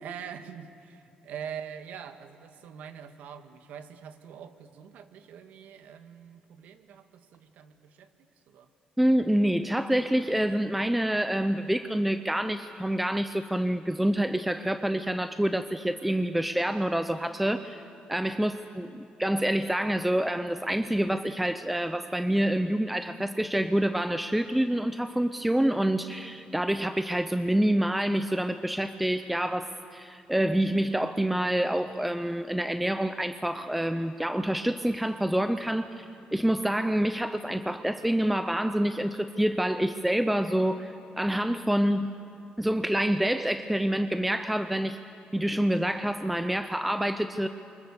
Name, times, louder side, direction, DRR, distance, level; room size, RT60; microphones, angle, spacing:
voice 1, 0.0-8.1 8.5-8.7, right 8 dB, 70° right, 9 dB, 1.5 m, -44 dB
voice 2, 9.0-17.8 18.1-36.1 36.3-42.1 42.6-45.0 45.3-47.5, right 1 dB, 5° right, 10 dB, 0.5 m, -27 dB
28.5 x 24.5 x 7.1 m, 2.6 s
cardioid pair, 165°, 3 cm